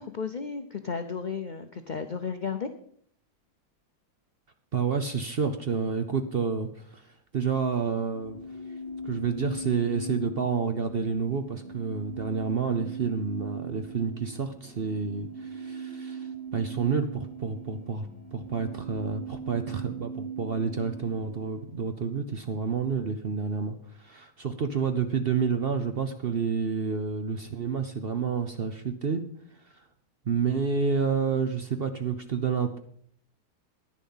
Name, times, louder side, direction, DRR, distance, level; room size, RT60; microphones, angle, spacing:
voice 1, 0.0-2.7, left 5 dB, 70° left, 7 dB, 0.4 m, -33 dB
voice 2, 4.7-8.4 9.0-29.2 29.7-29.8 30.3-32.8, right 5 dB, 50° right, 8 dB, 0.7 m, -29 dB
sound 1, 7.9-21.7, right 3 dB, 15° left, 1.8 m, -40 dB
10.5 x 10.0 x 5.6 m, 0.63 s
omnidirectional pair, 1.8 m